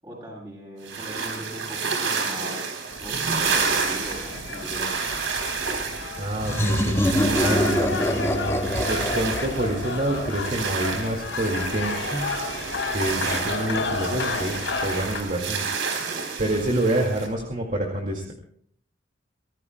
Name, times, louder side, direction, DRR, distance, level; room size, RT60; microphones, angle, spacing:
voice 1, 0.0-2.6 3.0-5.0, equal, 20° right, -1 dB, 7.7 m, -39 dB
sound 1, 0.9-17.3, right 5 dB, 85° right, 3.8 m, -30 dB
sound 2, 2.9-15.2, left 3 dB, 80° left, 4.8 m, -32 dB
voice 2, 6.2-7.0 7.4-12.3 12.9-15.7 16.4-18.3, right 1 dB, 40° right, 0 dB, 2.2 m, -27 dB
sound 3, 6.4-11.0, equal, 15° left, 1.7 m, -25 dB
24.5 x 18.0 x 2.3 m, 0.63 s
head